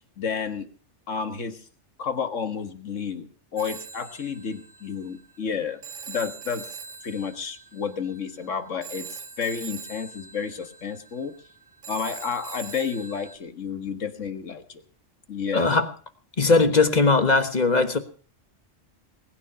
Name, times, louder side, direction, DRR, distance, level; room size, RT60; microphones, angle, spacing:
voice 1, 0.2-0.7 1.1-1.6 2.0-5.8 6.1-6.6 7.0-11.3 11.9-14.8 15.3-15.8, left 6 dB, 85° left, 1.9 m, -31 dB
Telephone, 3.6-13.4, right 6 dB, 80° right, 2.2 m, -42 dB
voice 2, 15.5-15.9 16.4-18.0, left 3 dB, 35° left, 1.4 m, -19 dB
20.5 x 9.6 x 5.7 m
omnidirectional pair, 1.3 m